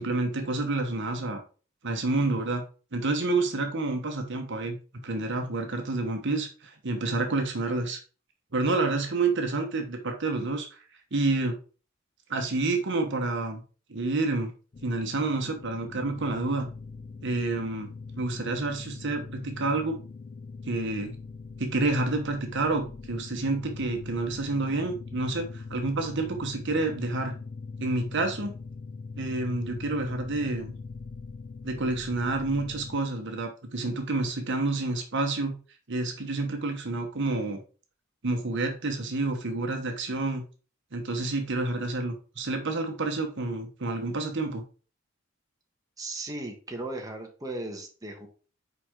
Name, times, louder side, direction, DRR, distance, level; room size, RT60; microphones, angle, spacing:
voice 1, 0.0-1.4 1.8-2.6 2.9-4.8 5.0-8.0 8.5-10.7 11.1-11.6 12.3-13.6 13.9-14.5 14.8-16.7 17.2-17.9 18.2-20.0 20.7-21.1 21.6-27.3 27.8-28.5 29.2-30.7 31.6-35.6 35.9-37.6 38.2-40.4 40.9-44.6, right 2 dB, 60° right, 4 dB, 1.1 m, -29 dB
sound 1, 14.7-33.0, left 4 dB, 35° left, 0.4 m, -42 dB
voice 2, 46.0-48.3, right 2 dB, 20° right, 1 dB, 1.3 m, -36 dB
5.9 x 4.9 x 3.7 m, 0.36 s
head